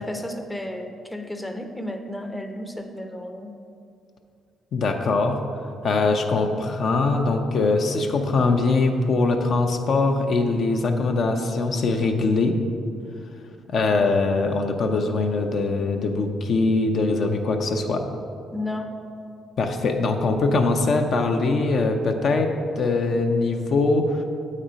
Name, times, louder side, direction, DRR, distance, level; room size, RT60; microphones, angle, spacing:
voice 1, 0.0-3.5 18.5-18.9, left 1 dB, 5° left, 4 dB, 0.6 m, -33 dB
voice 2, 4.7-5.4 5.8-12.5 13.7-18.1 19.6-24.2, left 3 dB, 60° left, 4 dB, 0.6 m, -22 dB
7.9 x 4.3 x 5.1 m, 2.4 s
cardioid pair, 90°, 0 cm